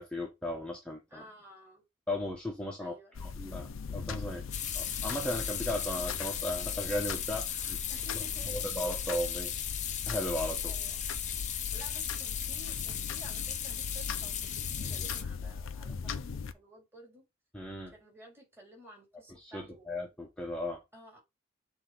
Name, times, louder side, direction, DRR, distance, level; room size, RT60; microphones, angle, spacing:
voice 1, 0.0-1.2 2.1-2.9 3.2-4.4 4.7-7.8 8.5-9.5 10.1-10.7 17.5-17.9 19.4-20.8, left 1 dB, 5° left, 1.2 m, -36 dB
voice 2, 1.1-1.8 2.8-3.3 7.9-8.7 10.6-11.0 11.7-17.2 17.9-20.1 20.9-21.2, right 1 dB, 10° right, 3.7 m, -53 dB
sound 1, 3.1-16.5, left 5 dB, 85° left, 0.6 m, -40 dB
sound 2, 4.5-15.2, left 9 dB, 35° left, 0.9 m, -36 dB
7.7 x 3.6 x 3.5 m
head